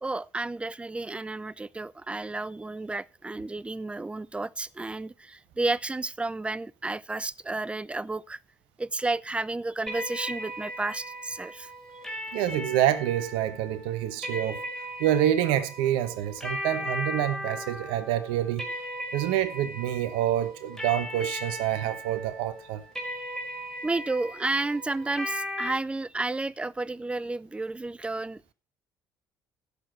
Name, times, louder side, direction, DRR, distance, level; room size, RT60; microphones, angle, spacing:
voice 1, 0.0-8.4 8.8-11.7 23.8-28.5, right 2 dB, 10° right, 0.5 m, -32 dB
sound 1, 9.9-25.7, equal, 5° left, 5.3 m, -37 dB
voice 2, 12.3-14.6 15.0-18.7 19.1-22.8, right 12 dB, 70° right, 1.0 m, -27 dB
16.0 x 7.0 x 4.5 m
hypercardioid pair, 55°, 9 cm